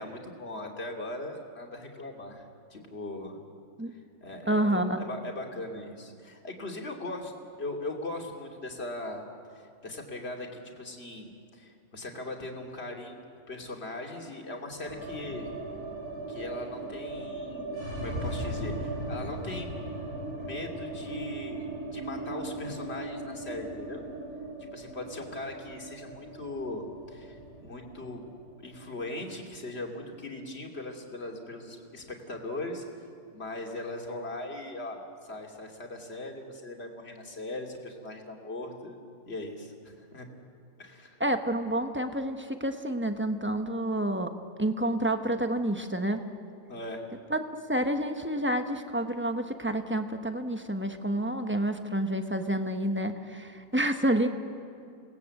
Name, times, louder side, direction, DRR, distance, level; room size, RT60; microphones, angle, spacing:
voice 1, 0.0-3.4 3.9-7.3 7.6-9.2 9.5-15.5 16.3-19.8 20.4-24.1 24.7-28.3 28.6-32.8 33.3-39.0 39.3-40.2 40.8-41.2 46.7-47.1, left 2 dB, 35° left, 1 dB, 2.9 m, -39 dB
voice 2, 4.5-5.0 41.2-44.3 44.6-46.2 47.3-54.3, right 1 dB, 10° right, 6 dB, 0.9 m, -29 dB
sound 1, 14.8-31.0 31.2-31.3 31.6-32.3, right 1 dB, 55° right, 7.0 m, -38 dB
28.0 x 19.5 x 8.3 m, 2.5 s
omnidirectional pair, 2.0 m